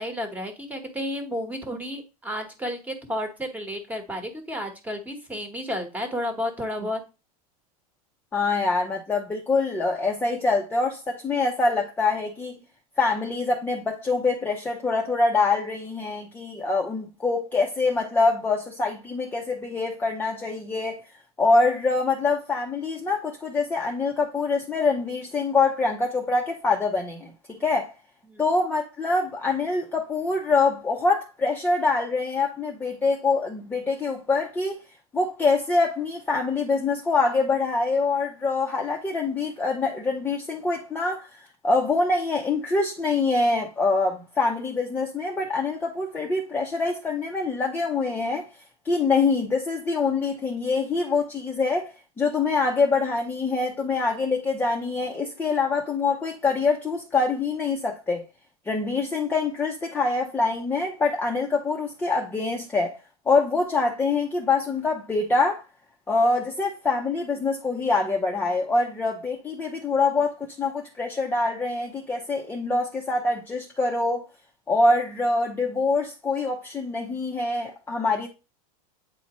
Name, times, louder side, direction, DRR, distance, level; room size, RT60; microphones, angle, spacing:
voice 1, 0.0-7.0 28.3-28.4, equal, 10° right, 1.3 m, -32 dB
voice 2, 8.3-12.6 13.0-21.0 21.4-27.9 28.4-34.8 35.1-41.3 41.6-48.5 48.8-58.2 58.7-62.9 63.3-65.6 66.1-74.3 74.7-78.3, left 3 dB, 10° left, 0.8 m, -25 dB
8.5 x 4.0 x 3.0 m
supercardioid pair, 145°, 20 cm